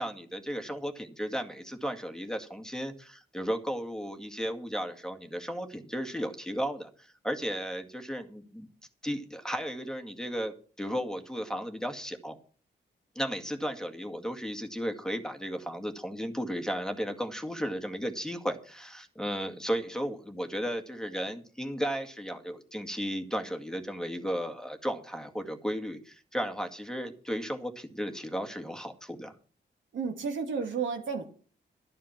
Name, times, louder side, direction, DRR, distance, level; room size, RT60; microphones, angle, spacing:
voice 1, 0.0-8.7 9.0-12.4 13.2-29.3, equal, 5° left, 5 dB, 2.1 m, -34 dB
voice 2, 29.9-31.2, right 5 dB, 85° right, 3 dB, 2.8 m, -32 dB
12.0 x 11.0 x 6.0 m, 0.42 s
cardioid pair, 75°, 19 cm